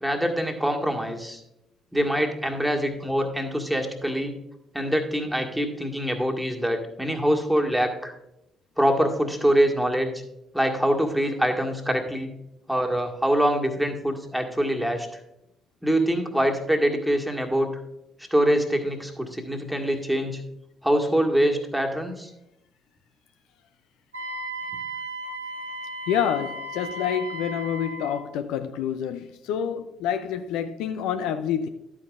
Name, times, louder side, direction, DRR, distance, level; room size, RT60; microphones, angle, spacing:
voice 1, 0.0-1.4 1.9-4.3 4.7-8.1 8.8-10.1 10.5-12.3 12.7-15.2 15.8-17.7 18.3-20.4 20.8-22.3, equal, ahead, 1.6 m, -24 dB
Wind instrument woodwind instrument, 24.1-28.3, right 1 dB, 90° right, 1.0 m, -35 dB
voice 2, 26.1-31.7, left 8 dB, 70° left, 0.4 m, -28 dB
11.5 x 8.8 x 2.4 m
hypercardioid pair, 45°, 0 cm